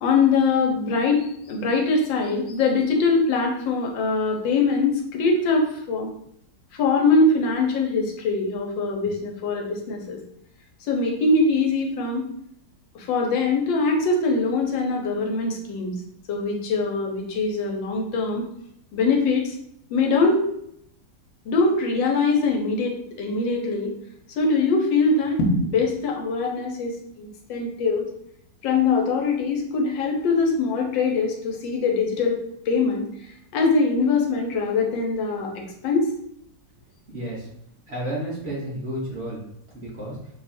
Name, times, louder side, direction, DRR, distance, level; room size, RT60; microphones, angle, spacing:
voice 1, 0.0-6.1 6.8-10.2 10.8-12.3 12.9-16.0 16.3-18.5 18.9-19.6 19.9-20.4 21.5-23.9 24.4-28.1 28.6-36.1, left 3 dB, 85° left, 1 dB, 1.4 m, -22 dB
voice 2, 37.1-37.5 37.9-39.4 39.7-40.2, right 1 dB, 50° right, -6 dB, 0.8 m, -31 dB
3.1 x 2.4 x 4.1 m, 0.72 s
omnidirectional pair, 2.0 m